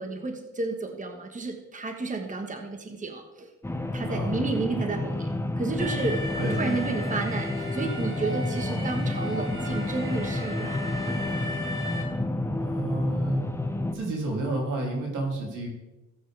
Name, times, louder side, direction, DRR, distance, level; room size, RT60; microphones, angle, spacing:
voice 1, 0.0-3.5 3.9-11.7, right 3 dB, 25° right, 4 dB, 1.4 m, -32 dB
sound 1, 3.6-13.9, left 1 dB, 10° left, 0.8 m, -30 dB
voice 2, 4.1-4.4 6.4-6.8 12.6-13.5 13.9-15.7, right 2 dB, 90° right, 0 dB, 3.0 m, -30 dB
Alarm, 5.8-12.0, left 1 dB, 45° right, 3.3 m, -36 dB
14.0 x 8.7 x 3.5 m, 1.0 s
cardioid pair, 90°, 30 cm